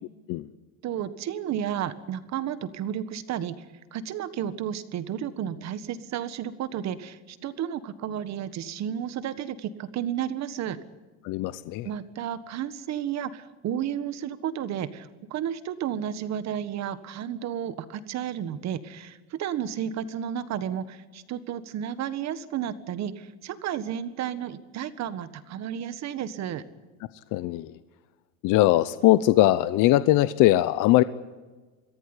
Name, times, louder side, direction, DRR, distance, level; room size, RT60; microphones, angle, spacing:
voice 1, 0.8-3.5 3.9-10.8 11.8-26.6, right 9 dB, 40° right, 13 dB, 1.6 m, -32 dB
voice 2, 11.2-11.9 27.3-27.7 28.4-31.0, left 16 dB, 45° left, 14 dB, 0.9 m, -20 dB
24.0 x 15.5 x 9.9 m, 1.3 s
supercardioid pair, 140°, 42 cm